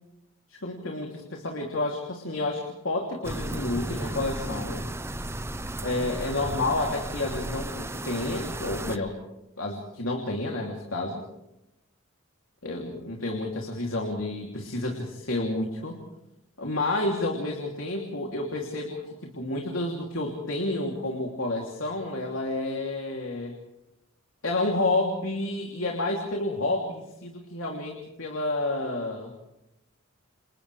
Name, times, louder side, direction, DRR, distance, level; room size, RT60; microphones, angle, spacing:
voice 1, 0.5-4.9 5.8-9.2 9.6-11.2 12.6-16.0 16.6-23.6 24.4-29.3, left 2 dB, 75° left, 1 dB, 3.1 m, -30 dB
sound 1, 3.2-9.0, right 1 dB, 10° right, 0.8 m, -34 dB
29.5 x 28.5 x 3.4 m, 0.86 s
head